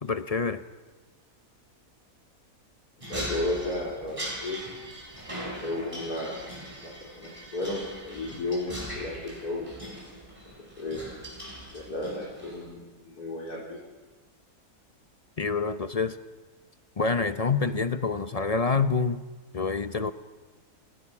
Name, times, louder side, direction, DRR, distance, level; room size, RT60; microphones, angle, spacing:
voice 1, 0.0-0.6 15.4-16.2 17.0-19.2 19.5-20.1, left 4 dB, 35° left, 11 dB, 0.7 m, -27 dB
voice 2, 3.0-4.7 5.6-9.7 10.4-11.0 11.7-13.8, left 2 dB, 80° left, -3 dB, 4.4 m, -34 dB
sound 1, 3.0-12.7, right 1 dB, 20° right, 6.0 m, -40 dB
29.0 x 21.0 x 6.1 m, 1.4 s
omnidirectional pair, 1.6 m